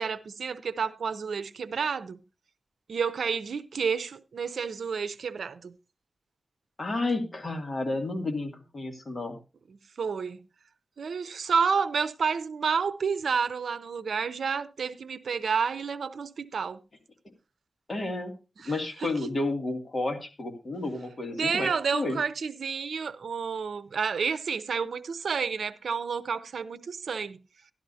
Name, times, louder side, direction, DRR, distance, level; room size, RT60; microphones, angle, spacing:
voice 1, 0.0-2.2 2.9-5.8 10.0-10.4 11.0-16.8 18.6-18.7 21.3-27.4, right 6 dB, 85° right, 0.6 m, -30 dB
voice 2, 6.8-9.4 17.9-18.3 18.6-22.2, left 2 dB, 40° left, 2.3 m, -31 dB
12.5 x 12.0 x 2.7 m
wide cardioid pair, 85°, 0 cm